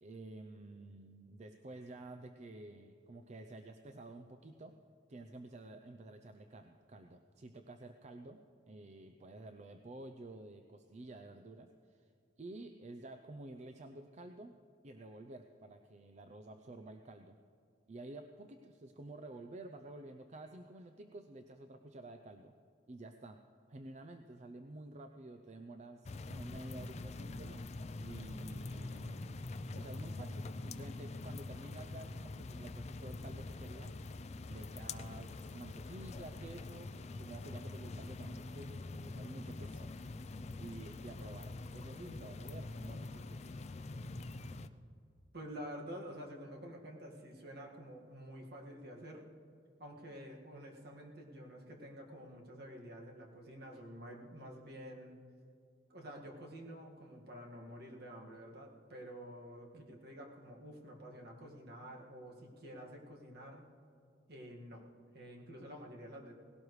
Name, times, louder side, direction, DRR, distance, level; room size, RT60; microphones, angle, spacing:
voice 1, 0.0-4.8 5.1-8.4 8.7-12.1 12.4-14.5 14.8-17.4 17.9-22.6 22.9-23.4 23.7-27.6 28.0-33.9 34.5-36.9 37.2-40.0 40.6-43.6 53.7-53.8 59.7-60.0, right 2 dB, 40° right, 6 dB, 0.5 m, -51 dB
sound 1, 26.0-44.7, left 2 dB, 35° left, 0.4 m, -45 dB
voice 2, 45.3-49.2 49.8-55.1 55.9-63.7 64.3-64.8 65.1-66.3, equal, 60° right, 0 dB, 1.9 m, -49 dB
18.5 x 17.0 x 3.2 m, 2.4 s
head